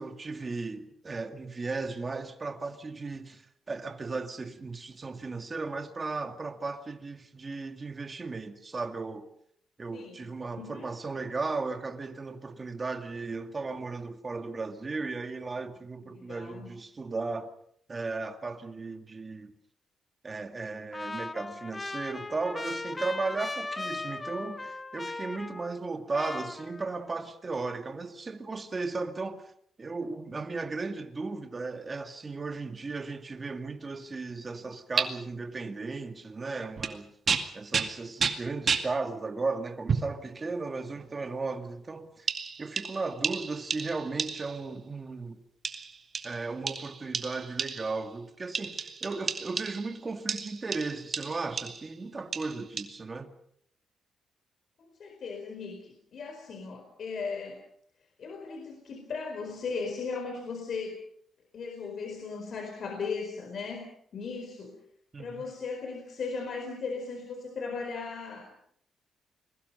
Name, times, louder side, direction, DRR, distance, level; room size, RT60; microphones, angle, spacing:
voice 1, 0.0-9.3 9.8-17.5 17.9-19.5 20.2-29.5 29.8-37.1 37.5-42.3 42.6-45.4 46.2-53.3 65.1-65.5, right 3 dB, 30° right, 2.2 m, -36 dB
voice 2, 9.9-10.3 10.6-10.9 16.1-16.7 54.8-57.6 58.2-61.0 61.5-63.9 64.1-64.8 65.2-68.5, left 4 dB, 55° left, 4.5 m, -37 dB
Trumpet, 20.9-25.9 26.1-27.1, left 3 dB, 20° left, 1.2 m, -38 dB
sound 1, 35.0-35.1 36.8-37.0 37.3-38.9 39.9-40.2 41.0-41.1 42.3-44.7 45.6-48.0 48.5-49.9 50.3-51.9 52.3-52.8, right 5 dB, 45° right, 2.2 m, -32 dB
29.5 x 21.5 x 5.5 m
cardioid pair, 120°, 0 cm